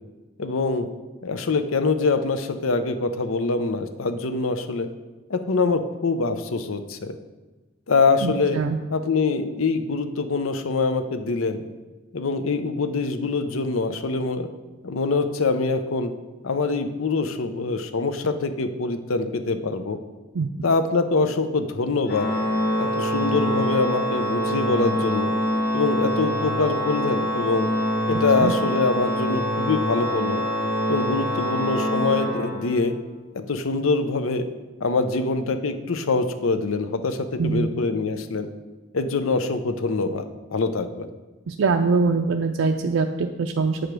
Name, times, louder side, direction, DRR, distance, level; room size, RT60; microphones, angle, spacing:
voice 1, 0.4-0.9 1.2-4.9 5.3-7.2 7.9-8.6 8.9-11.6 12.1-14.5 14.8-16.1 16.4-20.0 20.6-22.3 22.8-25.3 25.7-27.7 28.1-30.4 30.9-32.9 33.3-34.5 34.8-38.5 38.9-41.1, left 3 dB, 90° left, 9 dB, 0.7 m, -24 dB
voice 2, 8.2-8.8 20.3-20.5 28.4-28.5 37.4-37.7 41.5-43.8, right 4 dB, 85° right, 4 dB, 0.5 m, -23 dB
Organ, 22.1-33.0, equal, 60° left, 1.5 m, -25 dB
7.9 x 5.1 x 6.0 m, 1.2 s
head